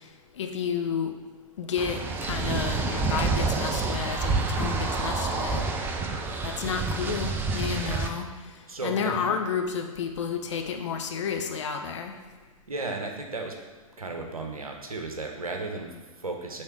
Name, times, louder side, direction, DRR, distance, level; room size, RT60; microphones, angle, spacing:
voice 1, 0.4-1.1 1.6-5.6 6.4-8.3 8.8-12.1, left 6 dB, 55° left, 4 dB, 0.7 m, -31 dB
sound 1, 1.8-8.1, right 3 dB, 10° right, 0.4 m, -28 dB
voice 2, 8.7-9.3 12.7-13.6 14.0-16.6, right 3 dB, 80° right, 2 dB, 1.0 m, -34 dB
6.6 x 3.4 x 4.7 m, 1.3 s
figure-of-eight pair, 105°, 18 cm